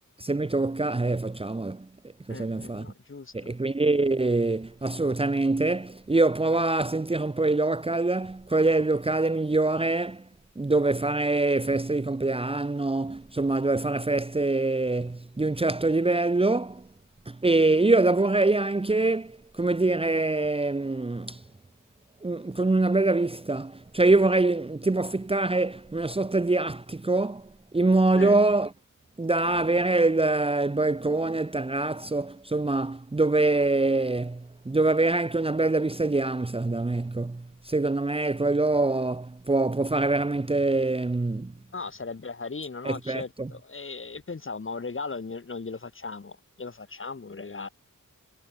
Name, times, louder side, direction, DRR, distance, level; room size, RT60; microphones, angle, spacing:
voice 1, 0.2-1.9 2.3-2.9 3.3-10.2 10.6-16.8 17.3-21.4 22.2-28.7 29.2-41.5 42.8-43.5, right 2 dB, 15° right, 1.0 m, -24 dB
voice 2, 2.3-3.5 28.1-28.4 41.7-47.7, left 4 dB, 40° left, 5.1 m, -37 dB
wide cardioid pair, 130°, 32 cm